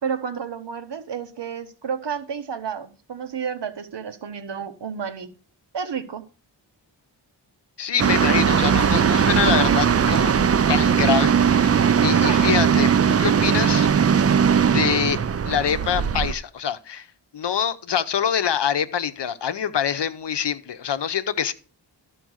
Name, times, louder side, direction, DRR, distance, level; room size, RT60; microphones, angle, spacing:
voice 1, 0.0-5.3 5.7-6.2 12.1-12.5, right 7 dB, 70° right, 1.1 m, -31 dB
voice 2, 7.8-10.3 10.7-13.9 14.7-15.2 15.5-17.1 17.3-21.5, left 8 dB, 65° left, 0.8 m, -25 dB
sound 1, 8.0-16.3, right 7 dB, 35° right, 0.4 m, -19 dB
13.0 x 4.6 x 6.3 m
wide cardioid pair, 115°, 44 cm